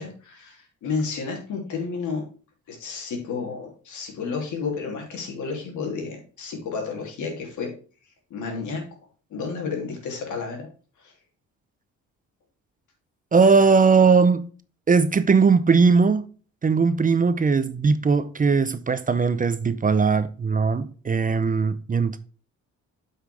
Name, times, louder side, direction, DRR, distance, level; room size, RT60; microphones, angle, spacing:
voice 1, 0.0-2.2 2.7-7.7 8.3-8.8 9.3-10.7 11.0-11.1, left 5 dB, 75° left, 2.9 m, -31 dB
voice 2, 13.3-14.5 14.9-16.2 16.6-22.2, right 5 dB, 30° right, 0.6 m, -19 dB
8.1 x 5.7 x 3.4 m
cardioid pair, 90°, 30 cm